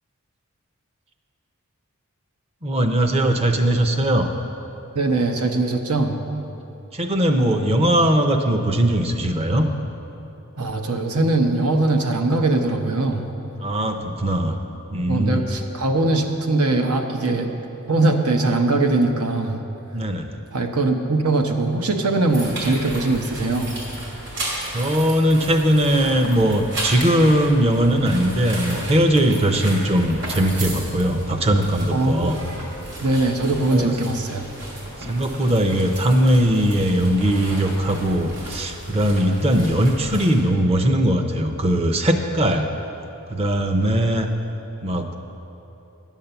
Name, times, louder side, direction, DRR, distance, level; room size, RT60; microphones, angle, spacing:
voice 1, 2.6-4.3 6.9-9.7 13.6-14.5 14.9-15.5 19.9-20.4 24.7-32.3 33.7-33.9 35.0-42.7 43.3-44.3 44.8-45.1, right 1 dB, 25° right, 6 dB, 0.6 m, -20 dB
voice 2, 4.9-6.2 10.6-13.3 15.1-17.5 17.9-19.6 20.5-23.7 31.9-32.3 33.0-34.4, right 2 dB, 85° right, 4 dB, 0.9 m, -21 dB
sound 1, 22.3-40.4, right 1 dB, 50° right, 2.7 m, -34 dB
10.5 x 7.4 x 6.8 m, 2.9 s
head